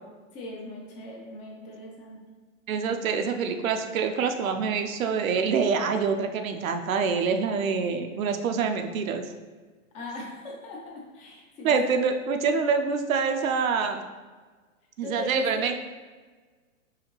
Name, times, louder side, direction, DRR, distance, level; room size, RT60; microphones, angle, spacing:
voice 1, 0.3-2.2 9.9-11.7 15.0-15.7, left 1 dB, 15° left, -1 dB, 0.5 m, -39 dB
voice 2, 2.7-9.2 11.6-14.0 15.0-15.7, right 5 dB, 80° right, 6 dB, 0.6 m, -26 dB
4.8 x 2.8 x 3.0 m, 1.4 s
hypercardioid pair, 140°, 40 cm